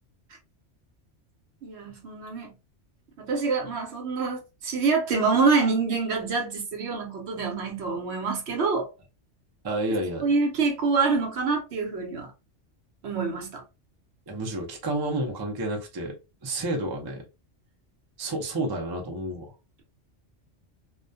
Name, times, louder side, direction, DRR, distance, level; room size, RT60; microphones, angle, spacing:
voice 1, 1.6-2.5 3.2-8.9 10.2-12.3 13.0-13.6, right 4 dB, 70° right, 1.0 m, -26 dB
voice 2, 9.6-10.3 14.3-17.2 18.2-19.5, right 1 dB, 30° right, 0.4 m, -30 dB
2.3 x 2.2 x 2.5 m
omnidirectional pair, 1.2 m